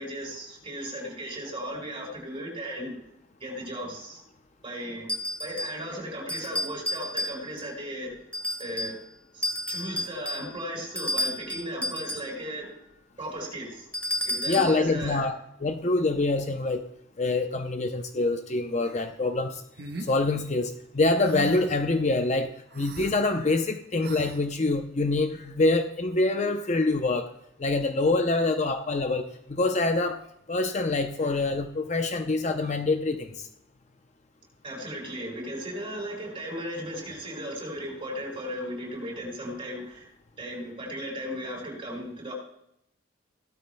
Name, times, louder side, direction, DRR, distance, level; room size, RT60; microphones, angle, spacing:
voice 1, 0.0-2.9 3.4-4.2 4.6-5.1 5.4-8.1 8.6-9.0 9.3-12.7 13.2-13.9 14.2-15.2 34.6-40.1 40.4-42.3, equal, 30° right, -2 dB, 4.8 m, -36 dB
sound 1, 5.1-5.9 6.3-7.7 8.3-9.0 9.4-12.4 13.9-14.8, left 1 dB, 5° left, 1.5 m, -32 dB
voice 2, 14.5-16.8 17.2-19.6 20.0-27.3 27.6-30.2 30.5-33.5, left 2 dB, 35° left, 7 dB, 0.6 m, -25 dB
sound 2, 19.8-20.1 21.2-21.8 22.7-23.1 24.0-24.4, right 2 dB, 55° right, 1.3 m, -38 dB
17.0 x 12.5 x 2.2 m, 0.76 s
head